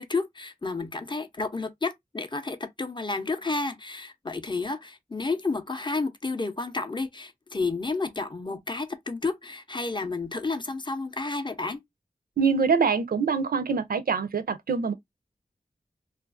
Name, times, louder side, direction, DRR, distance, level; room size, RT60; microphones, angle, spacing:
voice 1, 0.0-11.8, left 3 dB, 30° left, 0.5 m, -31 dB
voice 2, 12.4-14.9, right 5 dB, 75° right, 0.4 m, -24 dB
2.4 x 2.3 x 2.3 m
wide cardioid pair, 70°, 15 cm